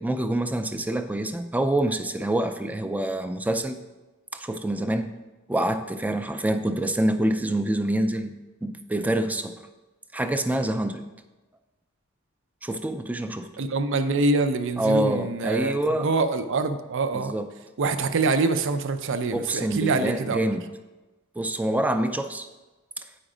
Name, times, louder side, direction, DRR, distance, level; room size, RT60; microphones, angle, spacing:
voice 1, 0.0-3.8 4.3-5.1 5.5-8.3 8.6-9.5 10.1-11.0 12.6-13.5 14.8-16.1 17.1-17.5 19.3-20.6 21.4-22.5, right 1 dB, 5° right, 8 dB, 0.4 m, -26 dB
voice 2, 13.6-17.3 17.8-20.4, right 3 dB, 65° right, 10 dB, 0.5 m, -25 dB
8.8 x 5.1 x 4.9 m, 1.1 s
head